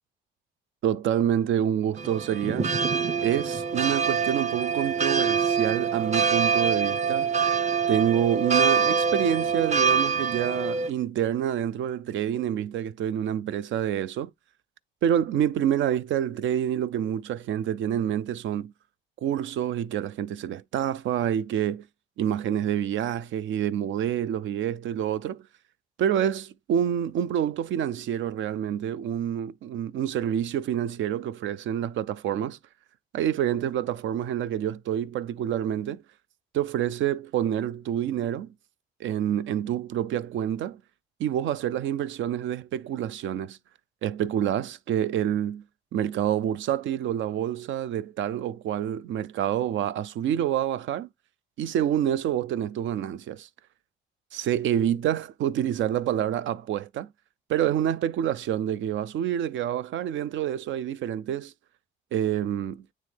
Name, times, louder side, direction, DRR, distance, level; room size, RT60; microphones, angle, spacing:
voice 1, 0.8-2.7 3.2-7.3 7.9-14.3 15.0-18.7 19.2-21.8 22.2-25.4 26.0-32.6 33.1-36.0 36.5-38.5 39.0-40.8 41.2-43.6 44.0-45.6 45.9-51.1 51.6-53.5 54.3-57.1 57.5-61.5 62.1-62.8, right 10 dB, 75° right, 0.5 m, -27 dB
sound 1, 2.0-10.9, right 6 dB, 35° right, 0.8 m, -25 dB
9.3 x 3.1 x 3.3 m
cardioid pair, 90°, 20 cm